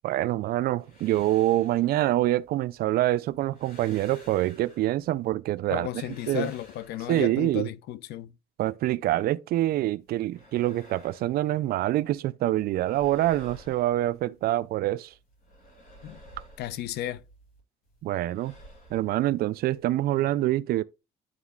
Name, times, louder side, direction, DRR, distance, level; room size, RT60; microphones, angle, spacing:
voice 1, 0.0-5.9 6.3-6.5 7.1-7.7 8.6-15.1 18.0-18.5 18.9-20.8, right 15 dB, 65° right, 0.4 m, -26 dB
sound 1, 0.6-2.8 3.2-5.3 5.7-7.6 10.0-12.2 12.4-14.7 15.0-17.6 17.8-20.2, equal, 60° left, 2.8 m, -53 dB
voice 2, 5.7-8.3 16.0-16.2 16.6-17.2, left 11 dB, 75° left, 0.5 m, -33 dB
11.0 x 4.0 x 2.3 m
cardioid pair, 110°, 17 cm